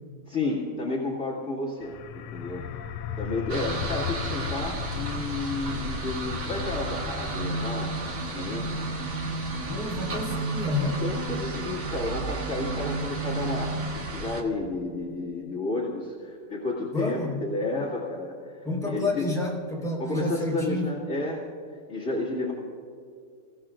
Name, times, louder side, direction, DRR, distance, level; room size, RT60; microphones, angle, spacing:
voice 1, 0.3-2.6 3.2-8.0 8.3-8.7 11.0-19.3 20.0-21.5 21.9-22.5, left 2 dB, 45° left, -6 dB, 2.5 m, -31 dB
sound 1, 1.8-13.3, left 8 dB, 85° left, 1.3 m, -38 dB
sound 2, 3.5-14.4, right 3 dB, 55° right, 1.8 m, -32 dB
voice 2, 9.6-11.0 16.9-17.3 18.6-20.9, left 2 dB, ahead, -4 dB, 4.5 m, -29 dB
28.0 x 16.5 x 2.5 m, 2.3 s
omnidirectional pair, 1.8 m